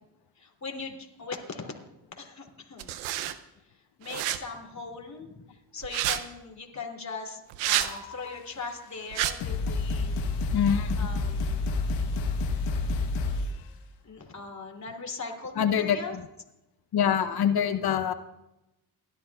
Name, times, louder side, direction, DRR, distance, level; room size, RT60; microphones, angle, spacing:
voice 1, 0.4-1.8 2.2-2.9 3.7-7.4 7.7-10.2 11.0-11.6 14.0-16.1, left 4 dB, 35° left, 1 dB, 2.9 m, -40 dB
sound 1, 2.8-3.3 4.1-4.4 5.8-6.2 7.5-7.9 9.1-9.3, right 13 dB, 90° right, 0.7 m, -28 dB
sound 2, 7.6-8.3 9.0-9.1 9.4-13.6, left 3 dB, 85° left, 1.3 m, -29 dB
voice 2, 10.5-11.0 15.6-16.0 16.9-18.1, left 8 dB, 50° left, 12 dB, 0.8 m, -24 dB
29.5 x 11.5 x 2.4 m, 0.95 s
hypercardioid pair, 50°, 48 cm